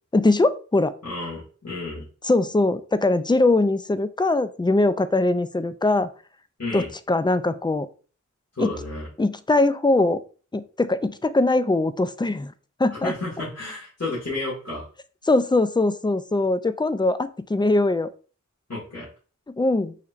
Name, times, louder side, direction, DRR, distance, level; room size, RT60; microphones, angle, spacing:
voice 1, 0.1-0.9 2.2-6.1 6.7-7.9 8.6-8.7 9.2-10.2 10.5-12.5 12.8-13.1 15.3-18.1 19.6-20.0, left 2 dB, 15° left, 12 dB, 0.3 m, -21 dB
voice 2, 1.0-2.0 6.6-6.9 8.6-9.1 12.9-14.8 18.7-19.1, left 2 dB, 55° left, -7 dB, 1.9 m, -31 dB
5.7 x 3.0 x 2.4 m, 0.39 s
wide cardioid pair, 40°, 30 cm